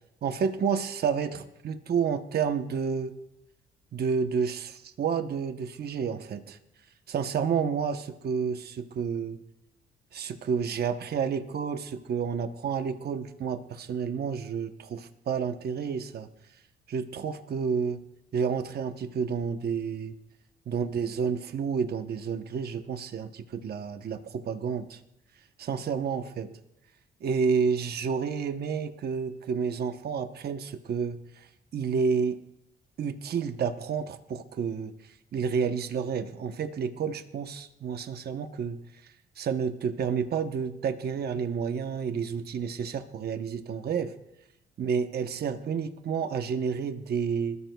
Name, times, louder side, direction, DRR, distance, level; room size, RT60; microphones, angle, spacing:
voice 1, 0.2-3.1 3.9-6.6 7.1-9.4 10.1-16.3 16.9-18.0 18.3-20.1 20.7-25.0 25.6-26.5 27.2-31.5 31.7-32.4 33.0-38.8 39.0-44.1 44.8-47.6, right 6 dB, 55° right, 8 dB, 0.9 m, -30 dB
28.0 x 13.5 x 2.3 m, 0.85 s
cardioid pair, 90°, 20 cm